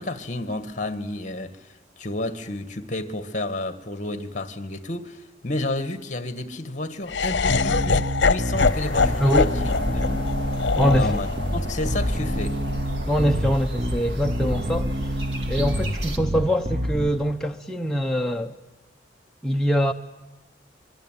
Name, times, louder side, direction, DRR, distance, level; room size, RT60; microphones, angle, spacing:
voice 1, 0.0-9.5 9.9-10.2 10.9-12.6, left 2 dB, 40° left, 1.8 m, -31 dB
Laughter, 7.1-13.2, left 4 dB, 80° left, 0.8 m, -24 dB
Bass guitar, 7.5-17.1, equal, 35° right, 1.1 m, -28 dB
sound 1, 8.6-16.2, equal, 75° right, 2.8 m, -31 dB
voice 2, 9.2-9.5 10.8-11.2 13.1-15.2 15.5-18.6 19.4-19.9, equal, 5° left, 0.8 m, -23 dB
24.5 x 24.0 x 9.2 m
head